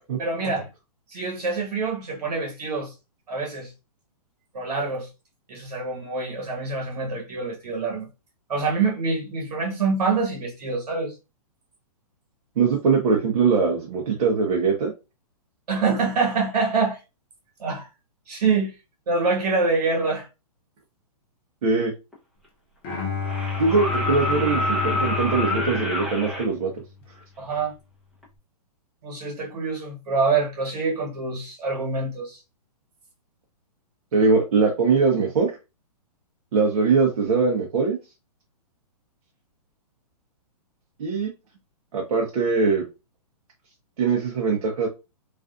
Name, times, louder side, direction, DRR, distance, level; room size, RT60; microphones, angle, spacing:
voice 1, 0.2-0.7 1.1-2.9 3.3-3.7 4.5-5.1 5.5-8.1 8.5-11.1 15.7-17.0 17.6-17.9 18.3-18.7 19.1-20.3 27.4-27.7 29.0-32.4, right 4 dB, 75° right, 1.3 m, -25 dB
voice 2, 12.6-14.9 21.6-21.9 23.6-26.7 34.1-35.5 36.5-38.0 41.0-41.3 41.9-42.8 44.0-44.9, right 4 dB, 60° right, 0.7 m, -21 dB
sound 1, 22.1-22.2 23.2-26.5 28.2-28.3, left 2 dB, ahead, 0.6 m, -27 dB
Bowed string instrument, 22.8-27.0, left 5 dB, 35° left, 0.7 m, -30 dB
2.5 x 2.4 x 2.4 m
hypercardioid pair, 145°, 20 cm